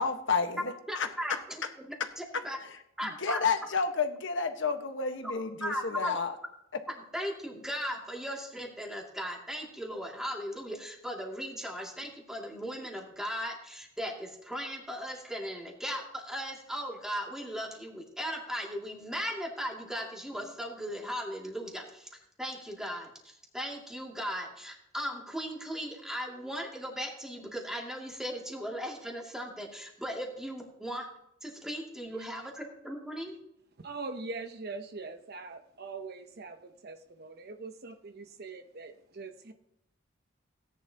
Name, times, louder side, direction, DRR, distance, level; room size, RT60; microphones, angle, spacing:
voice 1, 0.0-1.4 2.0-2.1 2.3-2.4 3.0-6.4, left 5 dB, 65° left, 6 dB, 1.4 m, -31 dB
voice 2, 0.9-1.6 2.2-2.6 3.0-3.4 5.6-6.2 6.9-31.1 31.4-33.3, equal, 5° right, -1 dB, 2.5 m, -37 dB
voice 3, 33.8-39.5, right 3 dB, 55° right, 6 dB, 0.9 m, -42 dB
17.5 x 10.0 x 2.9 m, 0.79 s
head